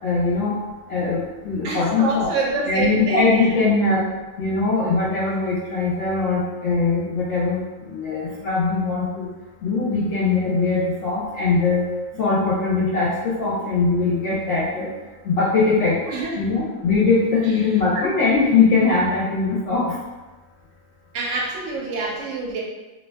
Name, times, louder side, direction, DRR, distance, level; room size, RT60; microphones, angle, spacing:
voice 1, 0.0-0.5 0.9-2.3 2.7-4.0 4.4-9.3 9.6-11.8 12.1-14.9 15.2-16.0 16.4-19.9, left 4 dB, 70° left, -7 dB, 0.9 m, -21 dB
voice 2, 1.6-3.6 16.1-16.5 17.9-18.1 21.1-22.6, right 3 dB, 65° right, -2 dB, 0.8 m, -27 dB
2.6 x 2.2 x 2.2 m, 1.2 s
omnidirectional pair, 1.5 m